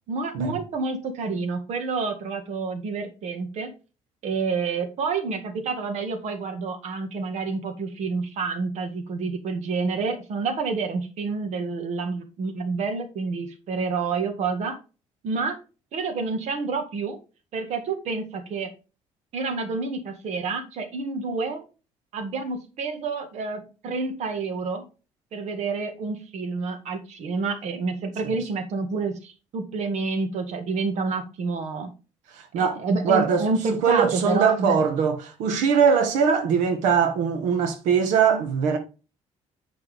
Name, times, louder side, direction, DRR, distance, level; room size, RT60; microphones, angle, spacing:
voice 1, 0.1-3.7 4.2-14.8 15.2-15.6 15.9-17.2 17.5-18.7 19.3-21.6 22.1-24.8 25.3-31.9 32.6-34.8, right 4 dB, 70° right, 1.8 m, -28 dB
voice 2, 32.3-38.8, right 6 dB, 85° right, 1.3 m, -22 dB
8.6 x 6.0 x 3.5 m
cardioid pair, 85°, 12 cm